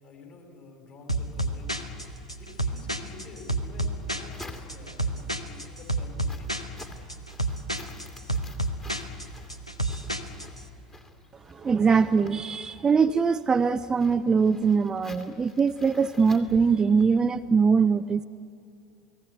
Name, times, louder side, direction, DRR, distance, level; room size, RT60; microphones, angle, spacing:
voice 1, 0.0-1.8 2.4-6.7, left 3 dB, 45° left, 3 dB, 5.6 m, -49 dB
sound 1, 1.1-10.6, right 1 dB, 90° left, 1.1 m, -30 dB
sound 2, 3.7-5.1 5.6-17.2, left 3 dB, 20° left, 2.3 m, -50 dB
voice 2, 11.5-18.3, right 5 dB, 20° right, 11 dB, 0.6 m, -22 dB
29.5 x 19.0 x 8.1 m, 2.9 s
figure-of-eight pair, 75°, 3 cm